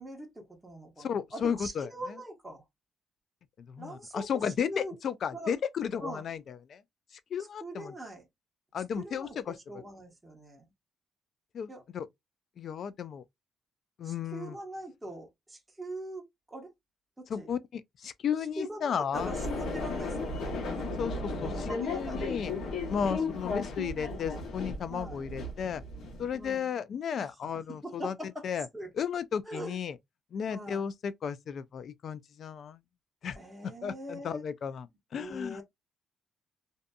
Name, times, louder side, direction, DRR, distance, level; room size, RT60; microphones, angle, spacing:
voice 1, 0.0-2.6 3.8-4.9 5.3-5.5 6.0-6.2 7.6-8.2 9.0-10.7 11.7-11.8 14.0-16.7 17.2-17.5 18.6-20.6 21.4-22.3 23.0-23.4 24.9-25.3 26.3-26.7 27.2-28.5 28.7-28.9 29.4-29.8 30.5-30.9 33.3-34.4 35.2-35.6, right 1 dB, 10° right, 0.9 m, -42 dB
voice 2, 1.0-1.9 3.6-6.8 7.1-7.9 8.7-9.6 11.5-12.1 12.6-13.2 14.0-14.6 17.3-19.3 21.0-22.5 22.9-25.8 26.2-28.2 28.4-28.7 29.0-30.0 30.3-32.8 33.2-33.4 33.8-35.6, left 7 dB, 60° left, 0.3 m, -34 dB
sound 1, 19.1-26.5, left 3 dB, 80° left, 1.0 m, -35 dB
2.6 x 2.5 x 2.2 m
cardioid pair, 90°, 0 cm